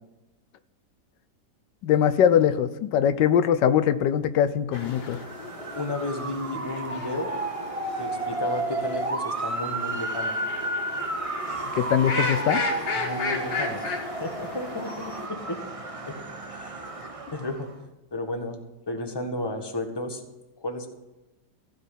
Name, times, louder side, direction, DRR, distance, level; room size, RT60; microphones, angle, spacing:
voice 1, 1.8-5.2 11.8-12.6, left 9 dB, 90° left, 13 dB, 1.3 m, -22 dB
sound 1, 4.7-15.3, left 3 dB, 70° left, 2.2 m, -35 dB
Motor vehicle (road) / Siren, 5.0-17.7, right 2 dB, 25° right, 0.8 m, -32 dB
voice 2, 5.7-7.4 8.0-10.4 13.0-15.6 16.1-16.2 16.5-16.9 17.3-17.7 18.1-18.6 18.9-20.2 20.6-20.9, left 2 dB, 15° left, 5 dB, 1.3 m, -33 dB
15.5 x 5.3 x 9.9 m, 1.0 s
omnidirectional pair, 1.8 m